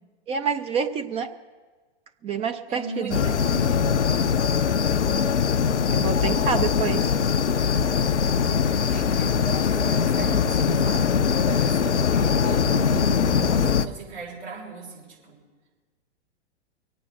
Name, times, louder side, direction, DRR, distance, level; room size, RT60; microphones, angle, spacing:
voice 1, 0.3-1.3 2.2-3.2 5.9-7.1, right 6 dB, 20° right, 8 dB, 0.4 m, -27 dB
voice 2, 2.7-3.9 6.6-7.1 8.9-15.4, right 3 dB, 75° right, -3 dB, 5.9 m, -38 dB
sound 1, 3.1-13.9, left 6 dB, 85° left, 0.7 m, -22 dB
22.5 x 8.8 x 6.2 m, 1.4 s
figure-of-eight pair, 110°, 34 cm